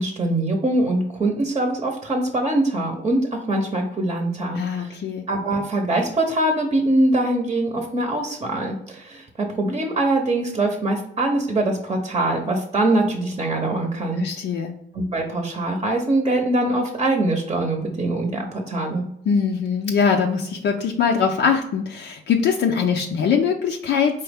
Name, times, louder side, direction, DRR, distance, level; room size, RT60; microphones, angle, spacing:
voice 1, 0.0-5.0 5.3-14.2 14.9-19.0, right 2 dB, 30° right, 3 dB, 0.8 m, -23 dB
voice 2, 4.5-5.3 14.2-14.7 19.3-24.2, left 6 dB, 60° left, 2 dB, 0.5 m, -22 dB
4.4 x 3.1 x 3.5 m, 0.76 s
cardioid pair, 90°, 20 cm